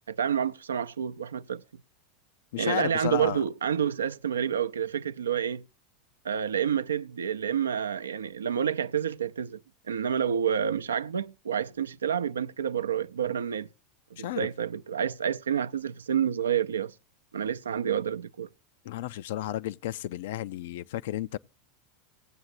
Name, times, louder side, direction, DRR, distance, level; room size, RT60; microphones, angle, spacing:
voice 1, 0.1-1.6 2.6-5.6 6.2-9.6 9.9-13.7 14.2-16.9 17.3-18.5, right 8 dB, 85° right, 0.4 m, -29 dB
voice 2, 2.5-3.4 14.2-14.5 18.9-21.4, left 14 dB, 65° left, 0.4 m, -33 dB
18.5 x 7.9 x 2.5 m
hypercardioid pair, 90°, 0 cm